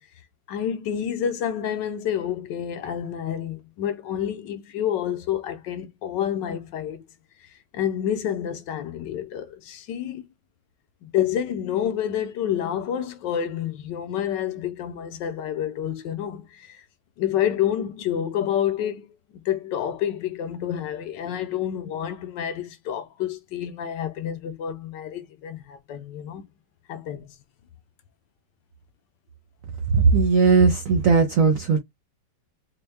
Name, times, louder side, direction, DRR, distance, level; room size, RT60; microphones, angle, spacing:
voice 1, 0.5-7.0 7.4-10.2 11.0-16.8 17.2-19.1 19.4-26.4 26.9-27.3, left 10 dB, 70° left, 1.2 m, -28 dB
voice 2, 29.9-31.8, right 5 dB, 75° right, 0.7 m, -18 dB
4.4 x 2.2 x 3.3 m
omnidirectional pair, 2.2 m